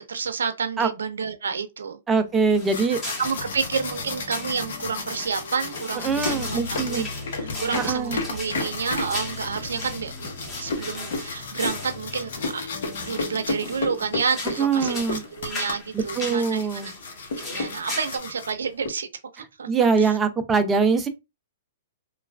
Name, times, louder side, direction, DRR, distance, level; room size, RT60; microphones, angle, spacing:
voice 1, 0.1-2.0 3.2-7.0 7.4-10.3 10.6-12.6 13.0-16.9 17.3-19.1 19.3-19.7 20.0-20.1, right 6 dB, 90° right, 0.5 m, -29 dB
voice 2, 2.1-3.0 6.0-7.1 7.7-8.2 14.6-15.2 15.9-16.9 19.7-21.1, right 5 dB, 15° right, 0.5 m, -23 dB
sound 1, 2.5-18.9, left 3 dB, 70° left, 0.9 m, -33 dB
sound 2, 2.5-18.2, left 2 dB, 25° left, 1.4 m, -38 dB
sound 3, 3.4-15.1, left 4 dB, 55° left, 1.2 m, -41 dB
3.0 x 2.3 x 2.2 m
hypercardioid pair, 140°, 0 cm